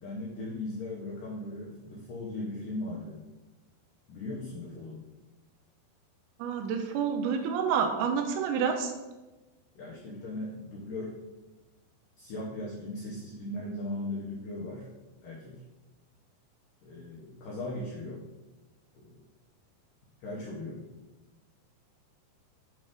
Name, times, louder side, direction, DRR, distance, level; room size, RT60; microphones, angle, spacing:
voice 1, 0.0-3.2 4.1-5.0 9.8-11.2 12.2-14.9 15.2-15.6 16.8-18.2 19.0-19.2 20.2-20.9, left 2 dB, 85° left, -4 dB, 1.8 m, -38 dB
voice 2, 6.4-8.9, right 6 dB, 85° right, 5 dB, 2.7 m, -28 dB
7.8 x 3.2 x 5.2 m, 1.1 s
omnidirectional pair, 5.2 m